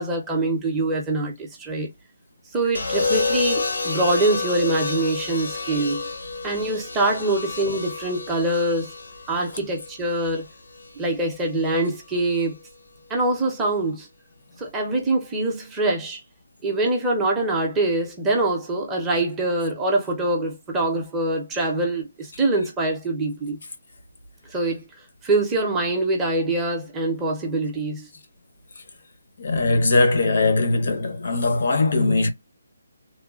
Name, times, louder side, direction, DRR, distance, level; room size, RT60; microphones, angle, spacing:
voice 1, 0.0-1.9 2.5-6.0 6.4-8.9 9.3-10.5 11.0-12.6 13.1-14.1 14.6-16.2 16.6-23.6 24.5-24.8 25.2-28.1, right 2 dB, 5° right, 0.5 m, -24 dB
sound 1, 2.7-10.9 12.1-12.5, left 3 dB, 75° left, 0.8 m, -29 dB
voice 2, 29.4-32.3, left 3 dB, 45° left, 0.6 m, -20 dB
3.0 x 2.1 x 2.3 m
hypercardioid pair, 175°, 0 cm